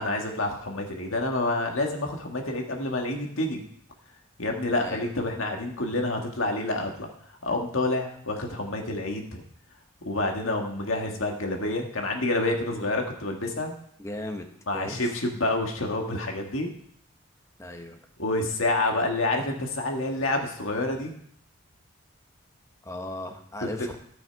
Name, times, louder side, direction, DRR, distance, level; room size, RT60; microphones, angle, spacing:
voice 1, 0.0-3.6 4.4-7.1 7.4-9.4 10.0-13.7 14.7-16.7 18.2-21.1 23.8-23.9, left 2 dB, 85° left, 2 dB, 1.8 m, -28 dB
voice 2, 4.8-5.1 14.0-14.5 14.7-15.1 17.6-18.0 22.8-24.0, left 1 dB, 15° left, 4 dB, 1.0 m, -36 dB
14.0 x 6.1 x 4.6 m, 0.66 s
head